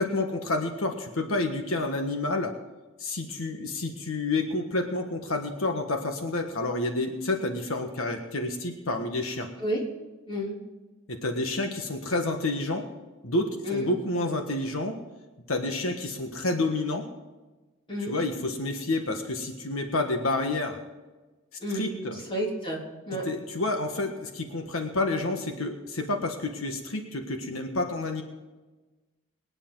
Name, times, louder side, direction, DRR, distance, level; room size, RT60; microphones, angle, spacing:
voice 1, 0.0-2.6 3.0-9.5 11.1-12.9 13.2-15.0 15.5-17.1 18.1-20.8 21.7-22.2 23.1-28.2, left 2 dB, 80° left, 4 dB, 1.5 m, -29 dB
voice 2, 10.3-10.6 13.7-13.9 17.9-18.1 21.6-21.9 22.3-22.8 23.1-23.3, equal, 25° left, -2 dB, 3.5 m, -30 dB
23.5 x 9.9 x 4.0 m, 1.2 s
head